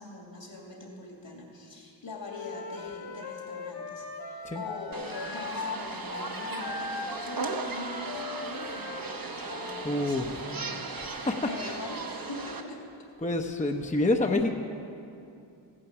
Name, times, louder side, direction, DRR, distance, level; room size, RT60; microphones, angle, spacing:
voice 1, 0.0-12.8, left 2 dB, 70° left, -1 dB, 2.8 m, -42 dB
Wind instrument woodwind instrument, 2.3-5.8 6.1-9.9, left 4 dB, 55° left, 1.2 m, -39 dB
sound 1, 4.9-12.6, right 3 dB, 50° right, 1.0 m, -37 dB
voice 2, 9.8-10.4 11.0-11.8 13.2-14.6, left 2 dB, 15° left, 3 dB, 0.8 m, -28 dB
15.0 x 8.9 x 6.1 m, 2.6 s
cardioid pair, 45°, 46 cm